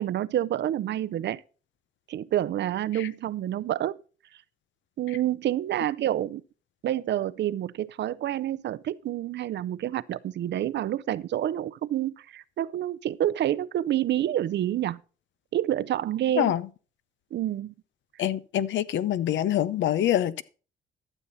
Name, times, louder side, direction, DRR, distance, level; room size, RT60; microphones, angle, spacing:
voice 1, 0.0-1.4 2.1-4.0 5.0-6.4 6.8-15.0 15.5-16.5 17.3-17.7, right 12 dB, 60° right, 0.5 m, -28 dB
voice 2, 18.2-20.4, left 11 dB, 70° left, 0.7 m, -25 dB
12.5 x 7.1 x 4.0 m
cardioid pair, 90°, 20 cm